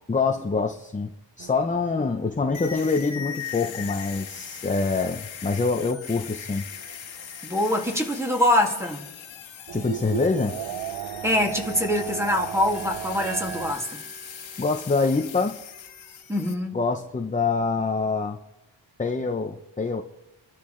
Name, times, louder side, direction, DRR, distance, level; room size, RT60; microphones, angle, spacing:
voice 1, 0.1-1.1 1.4-6.6 9.7-10.6 14.6-15.6 16.7-18.4 19.0-20.0, left 4 dB, 15° left, 0.7 m, -25 dB
sound 1, 1.4-5.1 5.5-5.6 6.0-7.6 8.2-8.3 9.7-13.8, right 10 dB, 65° right, 0.6 m, -37 dB
sound 2, 2.5-16.5, left 8 dB, 75° left, 1.5 m, -40 dB
voice 2, 7.4-9.1 11.2-14.0 16.3-16.8, left 1 dB, 5° right, 2.2 m, -24 dB
sound 3, 12.7-16.6, right 3 dB, 35° right, 6.3 m, -46 dB
30.0 x 12.0 x 3.2 m
wide cardioid pair, 145°, 47 cm